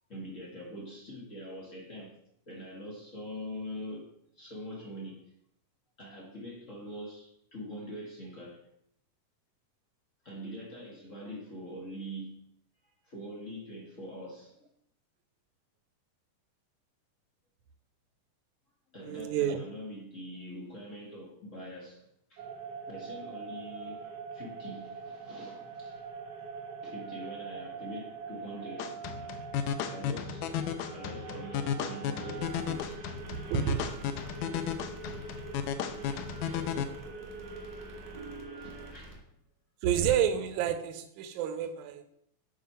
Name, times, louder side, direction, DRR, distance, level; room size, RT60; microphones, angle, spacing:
voice 1, 0.1-2.2 2.5-5.2 6.0-8.6 10.2-12.5 12.8-14.7 18.9-22.5 22.9-24.0 24.3-26.0 26.8-29.0 29.6-33.2 33.7-34.0 34.5-34.6 35.1-35.6 35.9-36.6 38.5-39.3, equal, 50° left, -2 dB, 0.9 m, -44 dB
voice 2, 19.0-19.6 33.3-33.9 39.8-42.0, right 9 dB, 75° right, 8 dB, 2.0 m, -29 dB
sound 1, 22.4-38.9, right 5 dB, 55° right, 1.1 m, -43 dB
sound 2, 28.8-36.8, left 8 dB, 80° left, 1.7 m, -34 dB
sound 3, 32.4-39.1, equal, 30° left, 0.3 m, -50 dB
7.7 x 5.1 x 5.5 m, 0.73 s
omnidirectional pair, 3.8 m